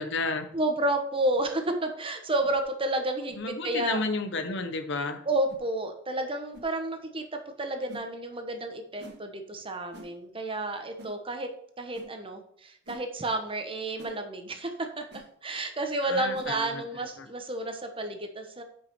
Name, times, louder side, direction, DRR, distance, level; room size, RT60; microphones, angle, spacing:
voice 1, 0.0-0.5 3.4-5.2 16.0-17.3, left 3 dB, 65° left, 8 dB, 1.0 m, -32 dB
voice 2, 0.5-4.0 5.2-11.5 11.8-18.6, right 1 dB, 25° right, 5 dB, 1.1 m, -31 dB
sound 1, 1.3-1.5 2.4-2.6 3.3-3.5 4.4-4.5 5.5-5.7 6.5-6.7 7.9-8.1 9.0-9.2 9.9-10.1 11.0-11.2 11.9-12.1 12.9-13.1 14.0-14.2 15.1-15.3 16.3-16.5, equal, 60° right, 1.5 m, -47 dB
8.2 x 5.7 x 4.7 m, 0.64 s
head